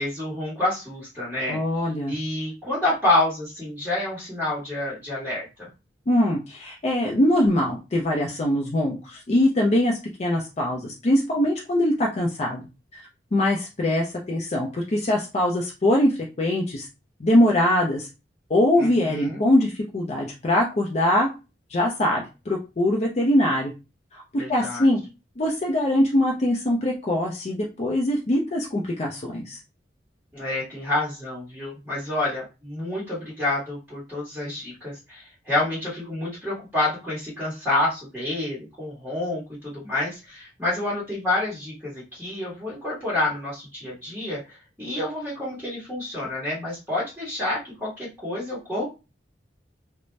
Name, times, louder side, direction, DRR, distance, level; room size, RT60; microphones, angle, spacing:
voice 1, 0.0-1.6 2.1-5.7 18.8-19.4 24.4-24.9 30.3-48.9, left 2 dB, 10° right, -8 dB, 1.3 m, -28 dB
voice 2, 1.5-2.2 6.1-12.6 12.9-13.0 13.3-16.9 17.2-18.1 18.5-21.3 21.7-23.7 24.1-25.0 25.4-29.6, left 1 dB, 35° left, -1 dB, 0.5 m, -22 dB
2.6 x 2.1 x 3.2 m, 0.28 s
head